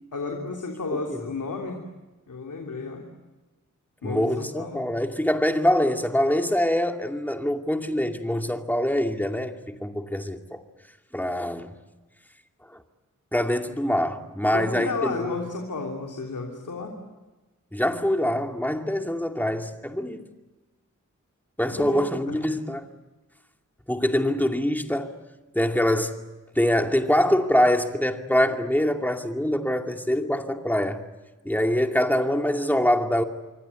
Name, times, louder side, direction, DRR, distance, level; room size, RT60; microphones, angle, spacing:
voice 1, 0.1-1.8 2.3-3.1 4.0-4.9 14.5-17.0 21.6-22.4, left 4 dB, 90° left, 3.3 m, -32 dB
voice 2, 4.0-10.6 11.1-11.8 13.3-15.4 17.7-20.3 21.6-22.9 23.9-25.1 25.5-26.1 26.6-31.0 31.4-33.2, left 1 dB, 5° left, 2.4 m, -24 dB
27.0 x 24.0 x 8.3 m
wide cardioid pair, 75°, 30 cm